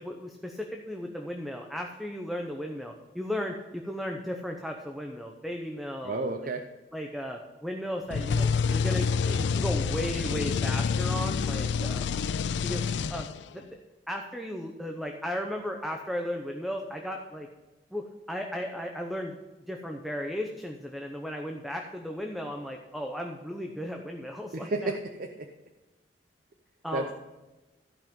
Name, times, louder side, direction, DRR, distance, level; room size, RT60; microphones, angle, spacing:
voice 1, 0.0-6.5 6.9-12.1 12.6-12.8 13.1-13.3 13.5-13.8 14.1-17.5 17.9-19.4 19.7-24.9 26.8-27.1, equal, ahead, 2 dB, 0.7 m, -35 dB
voice 2, 6.0-6.7 24.5-25.5 26.9-27.1, right 2 dB, 50° right, 5 dB, 0.7 m, -32 dB
sound 1, 8.1-13.6, left 5 dB, 85° left, 0.4 m, -28 dB
14.5 x 5.6 x 5.3 m, 1.1 s
head